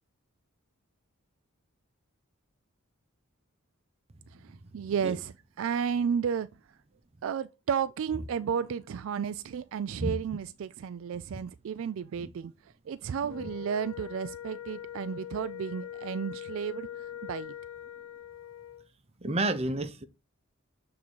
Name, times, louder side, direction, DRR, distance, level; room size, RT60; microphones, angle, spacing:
voice 1, 4.3-6.5 7.2-17.5, right 7 dB, 65° right, 0.3 m, -33 dB
Wind instrument woodwind instrument, 13.2-18.9, left 11 dB, 80° left, 0.5 m, -42 dB
voice 2, 19.2-20.1, right 2 dB, 30° right, 0.7 m, -30 dB
7.1 x 3.7 x 4.6 m
head